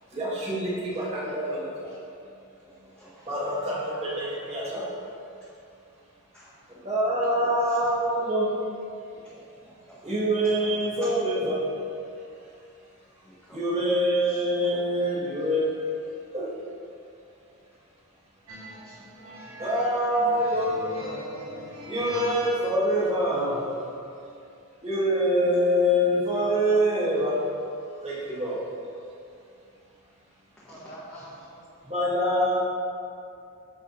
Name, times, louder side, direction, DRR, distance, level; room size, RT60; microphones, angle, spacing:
voice 1, 0.1-2.0 3.2-4.9 6.7-8.5 10.0-11.7 12.2-12.5 13.5-16.0 16.3-16.5 18.9-19.0 19.6-20.9 21.9-23.9 24.8-27.4 28.0-28.7 31.8-32.6, equal, 30° right, -8 dB, 1.9 m, -25 dB
voice 2, 0.9-1.3 1.7-2.0 2.6-3.5 5.4-5.5 6.3-6.5 7.1-7.2 7.6-7.9 9.3-10.1 10.4-11.1 11.5-11.6 13.2-13.6 14.3-14.8 15.1-15.2 18.8-18.9 23.3-23.4 30.6-31.2, equal, 5° left, -11 dB, 1.3 m, -50 dB
voice 3, 3.7-4.7 9.3-9.4 21.0-21.9 30.6-31.6, equal, 45° left, -5 dB, 1.5 m, -44 dB
sound 1, 18.5-23.0, equal, 65° right, 1.7 m, -40 dB
14.0 x 4.8 x 2.7 m, 2.5 s
head